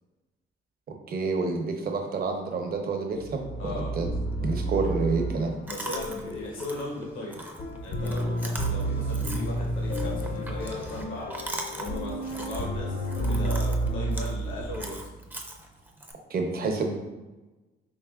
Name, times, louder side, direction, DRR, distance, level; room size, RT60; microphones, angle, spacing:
voice 1, 1.1-4.1 4.4-5.5 16.3-17.0, right 4 dB, 50° right, 3 dB, 0.7 m, -28 dB
sound 1, 3.2-15.3, right 1 dB, 45° left, 0.5 m, -31 dB
voice 2, 3.6-3.9 5.7-7.4 7.8-11.3 11.8-15.0, left 1 dB, 80° left, -3 dB, 1.0 m, -37 dB
Chewing mastication, 5.7-16.1, right 1 dB, 10° right, 0.4 m, -41 dB
4.6 x 3.2 x 2.3 m, 1.2 s
cardioid pair, 90°, 20 cm